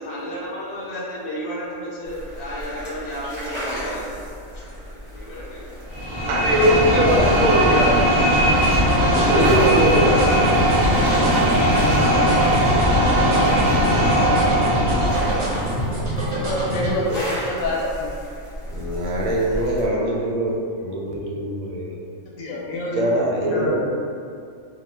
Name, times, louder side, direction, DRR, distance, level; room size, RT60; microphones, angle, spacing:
voice 1, 0.0-4.6 4.9-5.7, equal, 50° left, -7 dB, 0.5 m, -33 dB
sound 1, 2.0-19.9, equal, 25° left, 0.8 m, -34 dB
sound 2, 5.9-15.8, equal, 30° right, 0.4 m, -19 dB
voice 2, 6.3-8.3 9.3-10.4 16.5-16.6 18.7-22.0 22.9-23.8, right 1 dB, 90° right, -3 dB, 1.0 m, -22 dB
sound 3, 8.6-16.9, equal, 60° right, 0.8 m, -25 dB
voice 3, 16.2-18.1 22.4-23.0 23.4-23.8, left 1 dB, 85° left, -3 dB, 1.0 m, -27 dB
2.4 x 2.1 x 3.2 m, 2.4 s
omnidirectional pair, 1.4 m